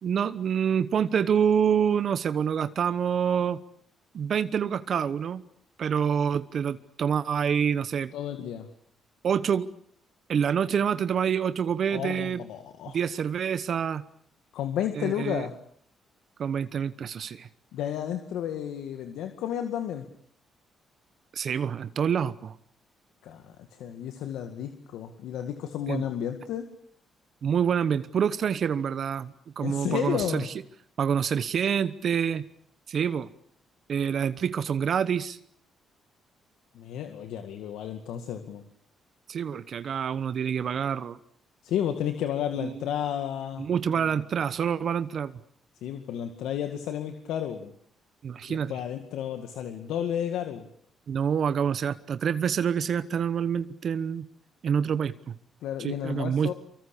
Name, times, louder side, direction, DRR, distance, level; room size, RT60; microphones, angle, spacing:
voice 1, 0.0-3.6 4.1-5.4 5.8-8.1 9.2-9.7 10.3-12.4 12.9-14.0 14.9-15.5 16.4-17.5 21.3-22.5 25.9-26.0 27.4-30.5 31.0-32.4 32.9-33.3 33.9-35.4 39.3-41.2 42.6-42.7 43.6-45.4 48.2-48.7 51.1-54.3 54.6-55.3 55.8-56.5, right 7 dB, 55° right, 14 dB, 1.0 m, -27 dB
voice 2, 8.1-8.7 11.9-13.0 14.5-15.5 17.7-20.1 23.2-26.7 29.6-30.5 36.7-38.6 41.6-43.7 44.0-44.1 45.8-47.7 48.5-50.7 55.6-56.5, left 10 dB, 85° left, 7 dB, 2.0 m, -32 dB
24.5 x 24.0 x 8.4 m, 0.64 s
cardioid pair, 90°, 0 cm